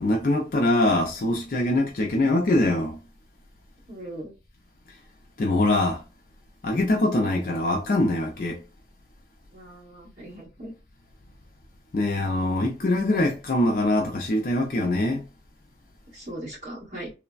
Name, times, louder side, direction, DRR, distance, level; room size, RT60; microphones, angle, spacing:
voice 1, 0.0-3.0 5.4-6.0 6.6-8.6 11.9-15.2, left 1 dB, 50° left, 0.4 m, -23 dB
voice 2, 3.9-4.3 9.5-10.7 16.1-17.1, right 1 dB, 45° right, 1.6 m, -39 dB
3.1 x 2.1 x 2.4 m
head